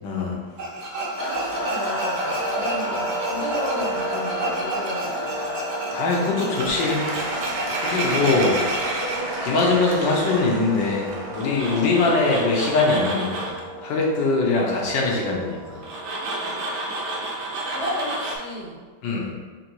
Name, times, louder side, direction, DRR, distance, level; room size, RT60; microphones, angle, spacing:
voice 1, 0.0-0.4 5.9-7.1 7.8-8.6 9.4-13.5 13.8-15.8 19.0-19.3, left 3 dB, 80° left, -2 dB, 1.4 m, -22 dB
Tools, 0.6-9.2 11.3-13.6 15.8-18.4, right 2 dB, 65° right, 1.1 m, -30 dB
sound 1, 1.2-17.9, equal, 55° left, 1.0 m, -33 dB
voice 2, 1.3-5.6 6.4-6.6 7.8-8.6 16.4-16.6 17.6-18.8, equal, 30° left, -6 dB, 0.7 m, -33 dB
Applause / Crowd, 6.7-13.0, right 2 dB, 90° right, 0.5 m, -33 dB
3.8 x 2.6 x 4.4 m, 1.4 s
omnidirectional pair, 2.0 m